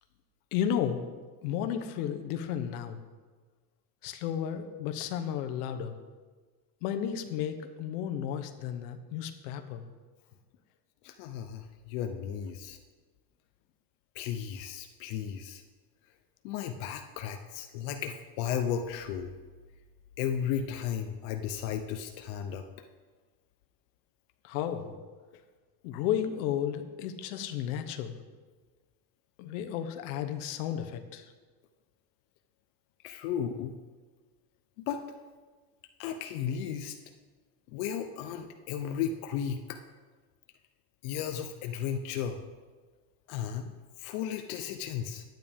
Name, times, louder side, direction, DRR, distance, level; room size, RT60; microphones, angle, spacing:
voice 1, 0.5-1.0 1.4-3.0 4.0-5.9 6.8-9.8 24.4-24.9 25.8-28.1 29.4-31.3, left 9 dB, 90° left, 8 dB, 1.0 m, -33 dB
voice 2, 11.0-12.8 14.2-15.6 16.4-19.3 20.2-22.6 33.0-33.7 34.9-35.0 36.0-37.0 37.7-39.8 41.0-42.4 43.3-43.7 44.0-45.2, left 8 dB, 65° left, 6 dB, 0.7 m, -34 dB
11.0 x 9.1 x 3.6 m, 1.4 s
cardioid pair, 180°, 45 cm